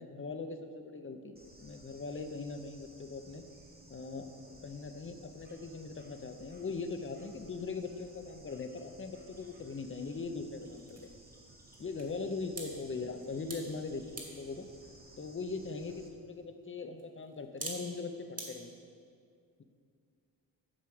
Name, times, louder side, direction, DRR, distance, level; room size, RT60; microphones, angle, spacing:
voice 1, 0.0-3.4 3.9-4.3 4.6-11.1 11.8-14.7 15.2-18.7, left 4 dB, 30° left, 7 dB, 0.5 m, -40 dB
Bird / Insect, 1.4-16.1, right 1 dB, 25° right, 1.0 m, -57 dB
sound 1, 10.6-18.5, right 2 dB, 40° right, 1.5 m, -50 dB
7.6 x 4.8 x 7.0 m, 2.3 s
wide cardioid pair, 120°, 39 cm